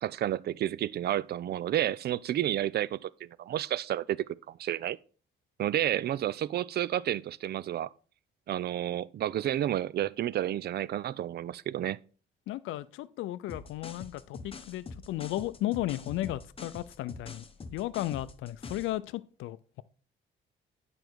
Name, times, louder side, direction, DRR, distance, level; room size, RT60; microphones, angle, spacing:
voice 1, 0.0-5.0 5.6-7.9 8.5-12.0, right 12 dB, 55° right, 0.4 m, -31 dB
voice 2, 12.5-17.4 17.7-19.8, left 15 dB, 90° left, 0.5 m, -34 dB
sound 1, 13.5-19.0, left 4 dB, 30° left, 0.9 m, -44 dB
8.7 x 5.3 x 4.6 m
cardioid pair, 90°, 20 cm